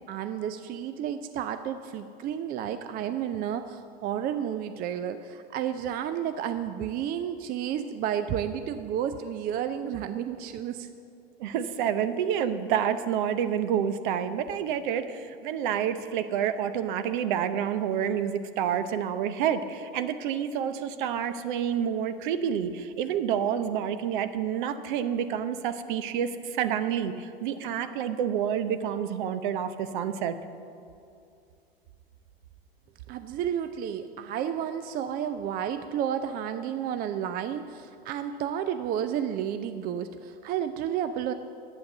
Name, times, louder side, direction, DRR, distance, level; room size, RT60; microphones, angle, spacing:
voice 1, 0.1-10.9 33.1-41.3, right 9 dB, 30° right, 10 dB, 0.5 m, -31 dB
voice 2, 11.4-30.3, right 8 dB, 55° right, 11 dB, 0.9 m, -28 dB
11.0 x 8.8 x 6.6 m, 2.5 s
figure-of-eight pair, 85°, 30 cm